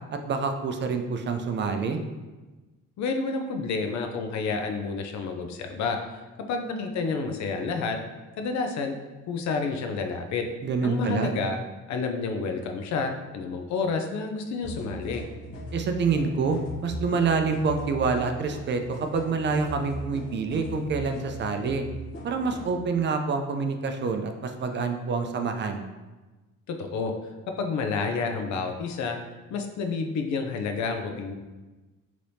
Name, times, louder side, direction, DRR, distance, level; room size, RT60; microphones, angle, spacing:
voice 1, 0.3-2.0 10.6-11.3 15.7-21.8 22.2-25.8, right 4 dB, 40° right, 6 dB, 0.4 m, -27 dB
voice 2, 3.0-6.0 6.5-8.0 8.4-8.9 9.3-10.4 10.8-11.6 11.9-15.2 26.7-27.1 27.6-29.2 29.5-31.3, left 4 dB, 65° left, 5 dB, 0.5 m, -29 dB
sound 1, 14.6-22.7, equal, 45° left, 0.9 m, -39 dB
3.3 x 2.9 x 2.6 m, 1.2 s
cardioid pair, 90°, 30 cm